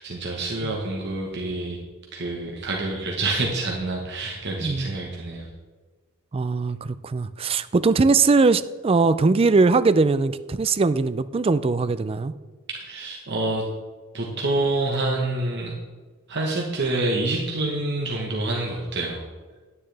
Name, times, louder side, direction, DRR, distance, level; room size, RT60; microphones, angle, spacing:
voice 1, 0.0-1.8 2.1-5.5 12.7-13.6 14.1-15.7 16.3-19.2, right 2 dB, 50° right, -1 dB, 1.2 m, -27 dB
voice 2, 4.6-4.9 6.3-12.3, right 4 dB, 25° right, 14 dB, 0.3 m, -20 dB
9.9 x 9.8 x 3.4 m, 1.4 s
head